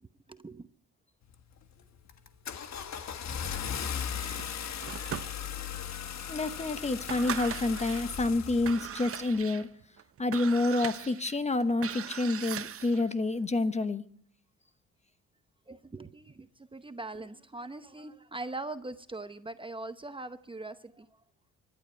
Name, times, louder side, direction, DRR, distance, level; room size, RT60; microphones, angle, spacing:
voice 1, 0.3-0.7 6.3-7.1 15.7-21.1, right 2 dB, 15° right, 0.8 m, -42 dB
Car / Engine starting, 1.3-1.6 2.1-9.1, left 8 dB, 65° left, 1.5 m, -37 dB
sound 1, 4.2-5.8 6.3-6.4 6.9-8.1 8.5-13.1, right 9 dB, 50° right, 0.8 m, -40 dB
voice 2, 6.3-9.7 10.2-14.0, left 2 dB, 20° left, 1.0 m, -28 dB
25.0 x 11.5 x 4.5 m
cardioid pair, 90°, 30 cm